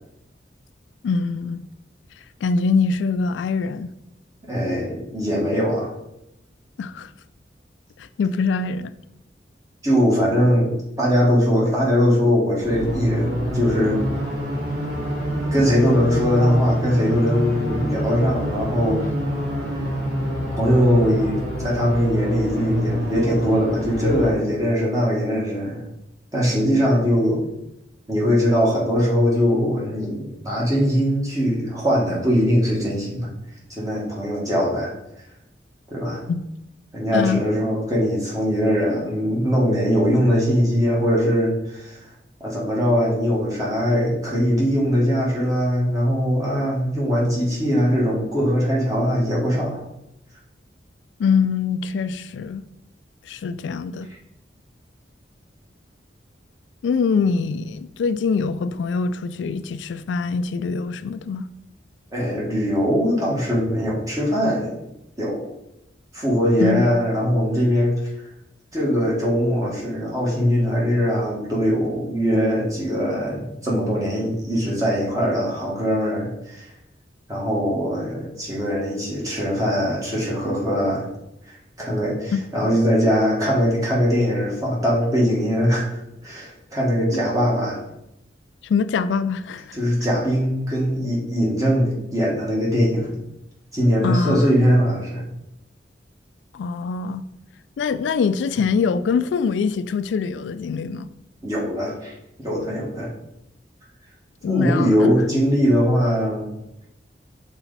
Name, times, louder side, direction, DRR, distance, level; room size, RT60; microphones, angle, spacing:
voice 1, 1.0-1.6 2.4-3.9 6.8-7.1 8.0-8.9 36.3-36.5 37.1-37.4 51.2-52.6 53.3-54.1 56.8-61.5 66.6-66.8 82.3-82.7 88.6-89.8 94.0-94.5 96.5-97.2 97.8-101.1 104.4-105.1, left 5 dB, 90° left, 14 dB, 0.3 m, -23 dB
voice 2, 4.5-5.9 9.8-14.0 15.5-19.1 20.6-25.8 26.3-27.4 28.1-33.3 33.7-34.9 35.9-36.2 36.9-42.0 42.4-49.8 62.1-64.8 65.2-65.4 66.1-67.9 68.7-76.7 77.3-81.1 81.5-87.8 89.7-93.1 93.7-95.2 101.4-102.1 102.4-103.1 104.5-106.5, equal, 20° right, -4 dB, 1.6 m, -21 dB
sound 1, 12.6-24.3, equal, 55° right, 2.3 m, -26 dB
5.8 x 4.1 x 4.0 m, 0.86 s
head